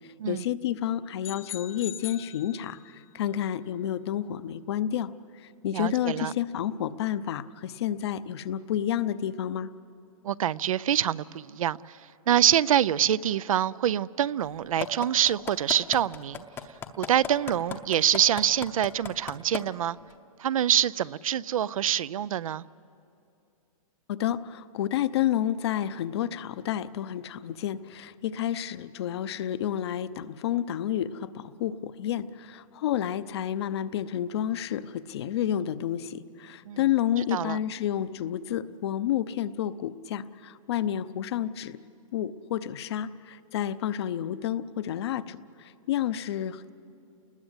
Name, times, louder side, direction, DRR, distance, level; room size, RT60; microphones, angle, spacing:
voice 1, 0.3-5.1 5.4-9.7 24.1-41.8 42.1-46.7, left 11 dB, 45° left, 0.7 m, -30 dB
sound 1, 1.2-3.0, left 11 dB, 75° left, 1.3 m, -41 dB
voice 2, 5.7-6.3 10.2-12.0 12.3-16.4 17.0-20.0 20.4-22.7 36.7-36.8 37.3-37.6, right 10 dB, 70° right, 0.5 m, -25 dB
sound 2, 14.8-19.6 20.1-20.2, left 8 dB, 10° left, 0.8 m, -34 dB
29.5 x 20.5 x 8.1 m
hypercardioid pair, 160°, 18 cm